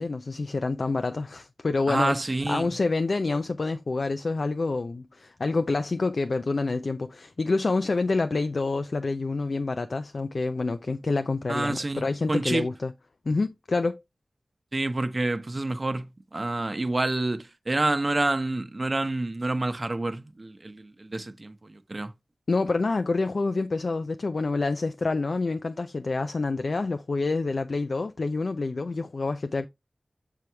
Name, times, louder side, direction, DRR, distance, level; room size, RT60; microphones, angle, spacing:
voice 1, 0.0-2.2 2.5-12.9 13.3-14.0 22.5-29.7, left 3 dB, 70° left, 0.5 m, -27 dB
voice 2, 1.9-2.7 11.5-12.7 14.7-22.1, right 2 dB, 45° right, 0.9 m, -28 dB
6.9 x 4.5 x 3.4 m
wide cardioid pair, 60°, 0 cm